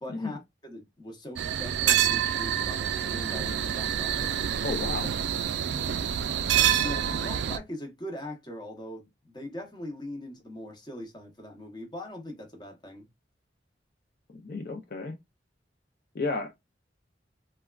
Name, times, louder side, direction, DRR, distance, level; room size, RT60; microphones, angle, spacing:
voice 1, 0.0-4.4 6.8-13.1, left 1 dB, 25° left, 0.8 m, -41 dB
sound 1, 1.4-7.6, right 10 dB, 75° right, 0.3 m, -27 dB
voice 2, 4.6-5.2 6.7-6.8 14.3-15.1 16.1-16.6, left 3 dB, 50° left, 0.5 m, -33 dB
3.4 x 2.2 x 2.3 m
head